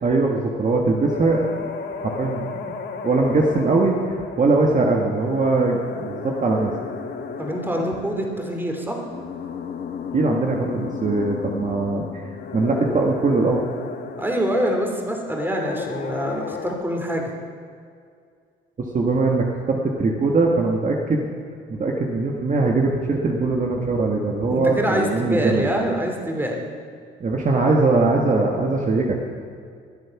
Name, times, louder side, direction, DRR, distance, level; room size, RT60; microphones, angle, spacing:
voice 1, 0.0-1.6 2.0-6.7 10.1-12.2 12.5-13.6 18.8-21.3 21.7-25.7 27.2-29.2, right 3 dB, 40° right, 0 dB, 1.6 m, -21 dB
sound 1, 1.0-16.8, left 5 dB, 60° left, 1.3 m, -34 dB
voice 2, 7.4-9.0 14.2-17.3 24.5-26.6, equal, 10° right, 1 dB, 3.0 m, -25 dB
22.5 x 8.0 x 6.0 m, 2.2 s
cardioid pair, 90°, 20 cm